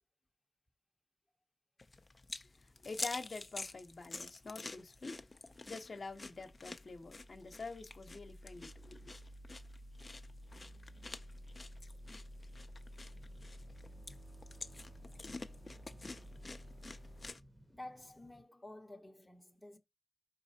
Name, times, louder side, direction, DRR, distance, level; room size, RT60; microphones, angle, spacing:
sound 1, 1.8-17.4, left 3 dB, 35° left, 0.5 m, -49 dB
voice 1, 2.8-5.2 5.6-9.1, left 3 dB, 55° left, 0.8 m, -46 dB
sound 2, 4.0-17.3, equal, 70° right, 1.9 m, -54 dB
sound 3, 13.1-18.4, right 1 dB, 15° right, 1.0 m, -63 dB
voice 2, 17.7-19.8, left 1 dB, 10° left, 0.8 m, -51 dB
4.7 x 4.0 x 2.7 m
cardioid pair, 55°, 0 cm